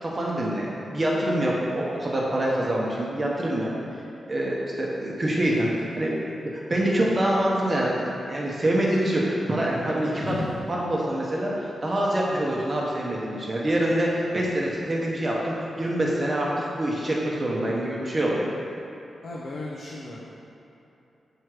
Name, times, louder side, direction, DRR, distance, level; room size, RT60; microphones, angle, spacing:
voice 1, 0.0-3.7 4.3-6.1 6.5-10.3 10.7-18.5, right 1 dB, 25° right, -4 dB, 0.8 m, -25 dB
voice 2, 10.2-10.5 19.2-20.3, left 1 dB, 60° left, -4 dB, 0.7 m, -35 dB
6.1 x 4.8 x 4.7 m, 2.9 s
wide cardioid pair, 165°, 0 cm